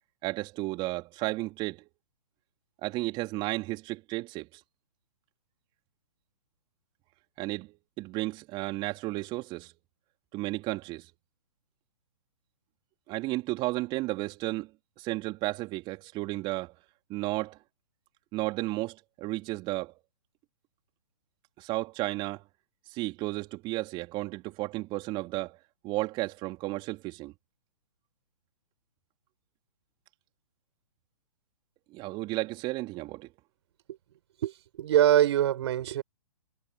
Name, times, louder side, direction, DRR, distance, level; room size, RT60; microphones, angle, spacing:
voice 1, 0.2-1.9 2.8-4.6 7.4-9.7 10.3-11.1 13.1-14.7 15.0-16.7 17.1-17.6 18.3-19.9 21.6-22.4 22.9-25.6 25.8-27.3 31.9-33.3, right 20 dB, 30° right, 3.5 m, -33 dB
voice 2, 34.4-36.0, right 12 dB, 50° right, 4.5 m, -24 dB
figure-of-eight pair, 125°, 18 cm